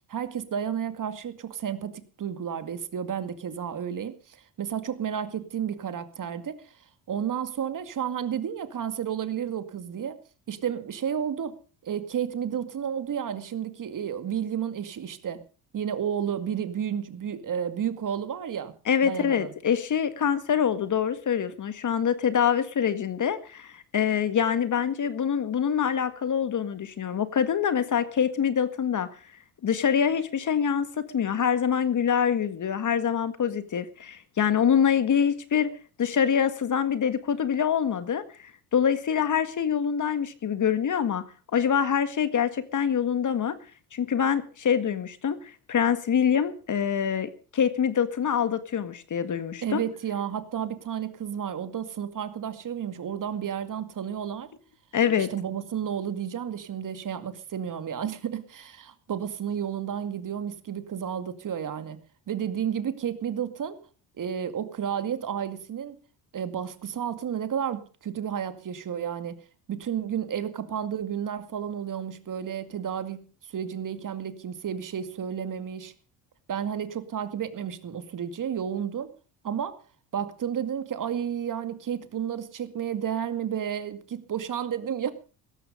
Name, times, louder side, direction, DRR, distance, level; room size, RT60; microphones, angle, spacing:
voice 1, 0.1-6.7 7.1-10.2 10.5-11.6 11.8-15.4 15.7-18.7 19.0-19.5 49.6-54.5 55.2-62.0 62.3-63.8 64.2-66.0 66.3-69.4 69.7-75.9 76.5-79.1 79.4-79.8 80.1-85.1, right 8 dB, 45° right, 11 dB, 2.2 m, -32 dB
voice 2, 18.9-29.1 29.6-35.7 36.0-41.2 41.5-43.6 43.9-49.8 54.9-55.3, left 8 dB, 40° left, 12 dB, 1.8 m, -25 dB
16.5 x 13.5 x 5.2 m, 0.37 s
supercardioid pair, 70°, 44 cm